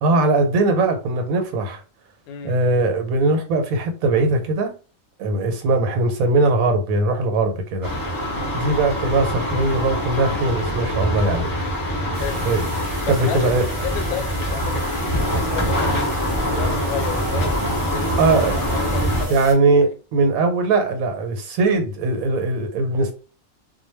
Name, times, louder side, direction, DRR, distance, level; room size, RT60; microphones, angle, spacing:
voice 1, 0.0-1.8 2.4-4.7 5.2-7.9 8.5-11.5 12.4-12.6 13.1-13.7 18.2-18.6 19.3-23.1, right 3 dB, 80° right, 1.1 m, -20 dB
voice 2, 2.3-2.6 8.3-8.6 12.2-12.5 13.0-19.9, left 8 dB, 85° left, 1.0 m, -33 dB
sound 1, 7.8-19.2, equal, 30° left, 0.4 m, -24 dB
sound 2, 12.1-19.5, right 2 dB, 45° right, 0.4 m, -37 dB
2.2 x 2.2 x 3.2 m
omnidirectional pair, 1.5 m